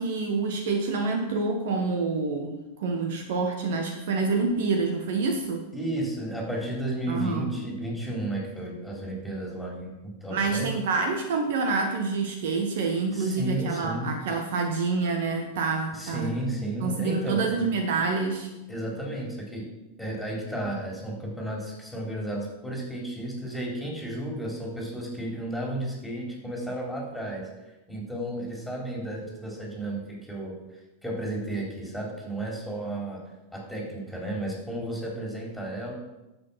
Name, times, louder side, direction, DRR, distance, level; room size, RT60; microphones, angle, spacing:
voice 1, 0.0-5.7 7.1-7.5 10.3-16.3 16.8-18.5, right 4 dB, 55° right, 4 dB, 1.4 m, -27 dB
voice 2, 5.7-10.7 13.1-14.2 15.9-17.7 18.7-19.7 20.0-27.5 27.9-30.6 31.0-33.2 33.5-35.9, right 1 dB, ahead, -2 dB, 3.7 m, -33 dB
10.5 x 7.4 x 5.9 m, 0.99 s
figure-of-eight pair, 90°, 0 cm